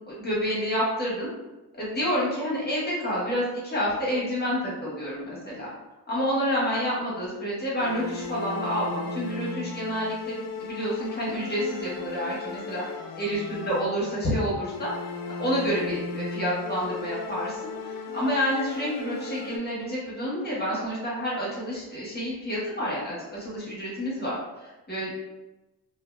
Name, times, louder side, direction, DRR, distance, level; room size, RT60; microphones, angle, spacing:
voice 1, 0.1-1.3 1.8-5.7 6.1-12.8 13.1-14.9 15.4-25.2, equal, 25° left, -6 dB, 1.2 m, -29 dB
sound 1, 7.8-14.2 14.6-19.6, left 4 dB, 60° left, 0.5 m, -36 dB
2.7 x 2.7 x 2.2 m, 1.0 s
cardioid pair, 95°, 38 cm